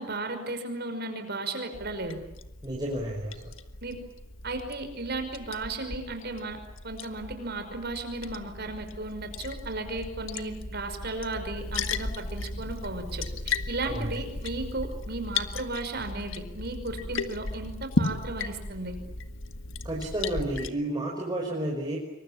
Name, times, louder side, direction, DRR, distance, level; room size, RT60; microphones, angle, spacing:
voice 1, 0.0-2.2 3.8-4.0 4.4-6.6 6.8-19.0, right 2 dB, 55° right, 7 dB, 5.5 m, -35 dB
Liquid, 1.7-20.7, left 3 dB, 85° left, 1.6 m, -36 dB
voice 2, 2.6-3.5 13.8-14.2 19.8-22.0, right 1 dB, 20° right, -2 dB, 5.4 m, -31 dB
27.0 x 24.5 x 8.8 m, 0.90 s
head